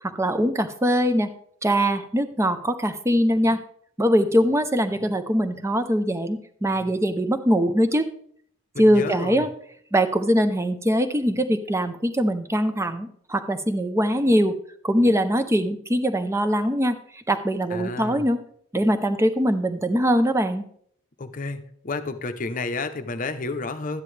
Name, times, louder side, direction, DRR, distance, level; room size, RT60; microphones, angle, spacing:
voice 1, 0.0-1.3 1.6-3.6 4.0-8.1 8.8-9.5 9.9-14.6 14.8-18.4 18.7-20.6, equal, 15° right, 10 dB, 0.5 m, -22 dB
voice 2, 8.7-9.5 17.7-18.3 21.2-24.0, left 3 dB, 35° left, 8 dB, 0.7 m, -31 dB
12.5 x 9.6 x 3.3 m, 0.65 s
head